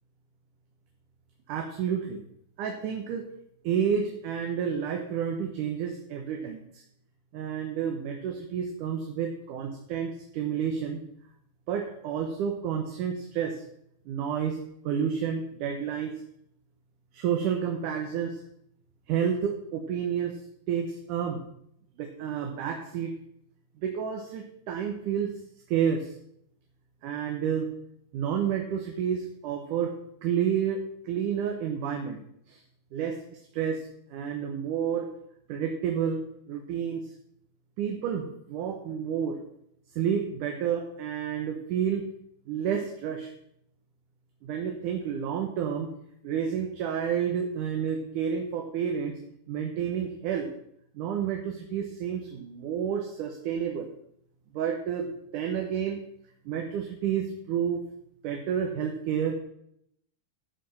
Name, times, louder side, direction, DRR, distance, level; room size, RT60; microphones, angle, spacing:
voice 1, 1.5-2.2 2.6-3.3 3.6-6.6 7.3-11.0 11.7-13.6 14.1-14.6 14.8-16.1 17.1-18.4 19.1-20.4 20.7-21.4 22.0-23.1 23.8-25.3 25.7-26.1 27.0-27.7 28.1-29.9 30.2-32.2 32.5-32.6 32.9-33.2 33.5-35.1 35.5-37.0 37.8-39.4 40.0-42.1 42.5-43.3 44.4-45.9 46.2-49.2 49.5-50.5 51.0-53.9 54.5-56.0 56.5-57.8 58.2-59.4, right 8 dB, 70° right, 3 dB, 2.5 m, -30 dB
14.5 x 5.0 x 6.4 m, 0.73 s
omnidirectional pair, 3.9 m